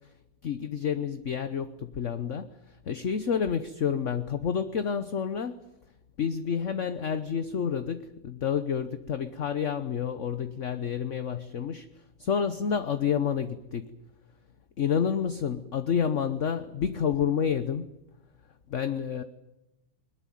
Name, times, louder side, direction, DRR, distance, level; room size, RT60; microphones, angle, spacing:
voice 1, 0.4-2.5 2.9-5.6 6.2-11.9 12.2-13.9 14.8-17.9 18.7-19.2, left 7 dB, 50° left, 1.0 m, -29 dB
21.5 x 20.5 x 9.3 m
omnidirectional pair, 2.2 m